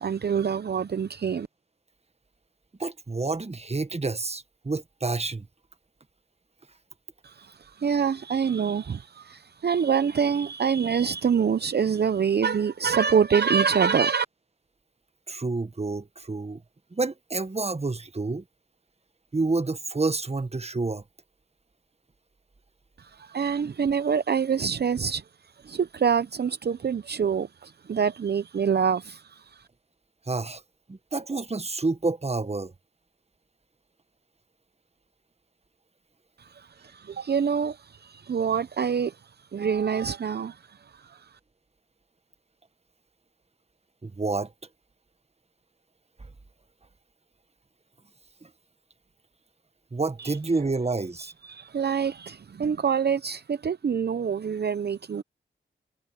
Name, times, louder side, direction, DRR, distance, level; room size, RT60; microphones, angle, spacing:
voice 1, 0.0-1.5 7.2-14.3 23.0-25.2 25.6-29.7 36.4-41.4 50.2-50.4 51.4-55.2, right 6 dB, 50° right, 0.8 m, -26 dB
voice 2, 2.8-5.5 15.3-16.6 16.9-18.4 19.3-21.0 30.3-30.6 30.9-32.7 44.0-44.5 46.2-46.3 48.4-48.5 49.9-51.3, right 3 dB, 30° right, 1.6 m, -29 dB
supercardioid pair, 40°, 21 cm